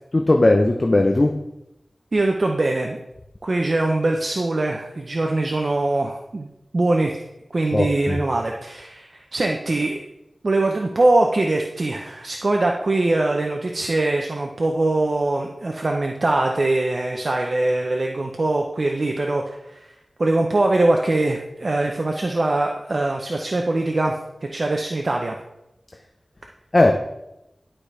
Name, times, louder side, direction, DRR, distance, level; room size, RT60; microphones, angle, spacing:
voice 1, 0.1-1.3 7.7-8.2 26.7-26.9, left 2 dB, 35° left, 3 dB, 0.6 m, -17 dB
voice 2, 2.1-3.0 3.4-6.5 6.7-7.2 7.5-10.0 10.4-19.9 20.2-25.4, right 2 dB, 55° right, 2 dB, 0.7 m, -22 dB
11.5 x 5.0 x 3.3 m, 0.88 s
wide cardioid pair, 75°, 0 cm